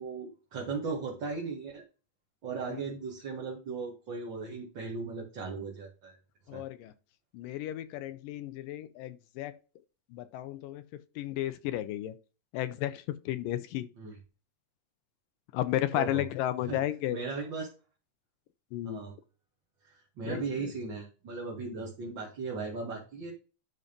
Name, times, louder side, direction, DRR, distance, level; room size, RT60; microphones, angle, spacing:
voice 1, 0.0-1.8 2.4-6.2 6.5-6.6 14.0-14.2 15.9-16.3 16.7-16.8 17.1-17.7 18.8-19.1 19.8-23.3, right 4 dB, 40° right, 2.0 m, -37 dB
voice 2, 6.5-6.9 7.3-9.6 10.1-12.1 12.5-13.9 15.5-17.2 18.7-19.0 20.2-20.7, left 13 dB, 80° left, 2.3 m, -33 dB
11.0 x 4.0 x 5.3 m
omnidirectional pair, 3.9 m